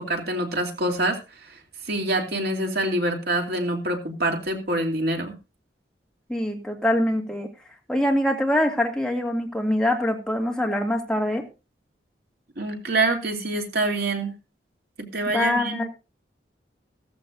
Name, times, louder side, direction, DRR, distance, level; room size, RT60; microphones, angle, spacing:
voice 1, 0.0-1.6 1.8-5.3 12.6-14.3 15.0-15.9, right 2 dB, 60° right, 2 dB, 3.0 m, -26 dB
voice 2, 6.3-7.5 7.9-11.4 15.3-15.9, left 1 dB, 5° left, 1 dB, 2.3 m, -24 dB
15.0 x 15.0 x 2.6 m, 0.29 s
head